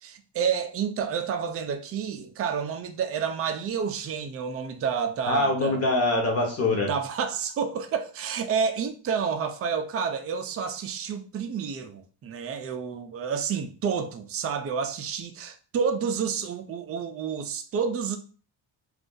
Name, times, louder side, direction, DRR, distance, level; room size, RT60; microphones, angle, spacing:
voice 1, 0.0-5.8 6.8-18.2, right 6 dB, 35° right, 0.4 m, -29 dB
voice 2, 5.3-6.9, left 2 dB, 30° left, 0.9 m, -24 dB
2.5 x 2.5 x 3.7 m
cardioid pair, 135°, 48 cm